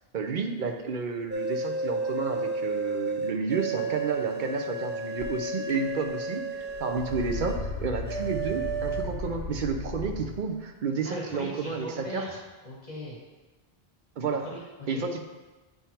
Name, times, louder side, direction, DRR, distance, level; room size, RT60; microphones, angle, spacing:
voice 1, 0.1-12.2 14.2-14.5 14.9-15.2, right 4 dB, 55° right, 5 dB, 0.7 m, -31 dB
sound 1, 1.3-7.6 8.1-9.0, right 3 dB, 15° right, 0.4 m, -32 dB
sound 2, 5.2-5.3 5.7-6.2 6.5-10.5, left 3 dB, 85° left, 1.2 m, -36 dB
voice 2, 11.0-13.2 14.4-15.1, left 1 dB, 45° left, -5 dB, 1.4 m, -39 dB
8.7 x 3.5 x 4.3 m, 1.2 s
omnidirectional pair, 1.1 m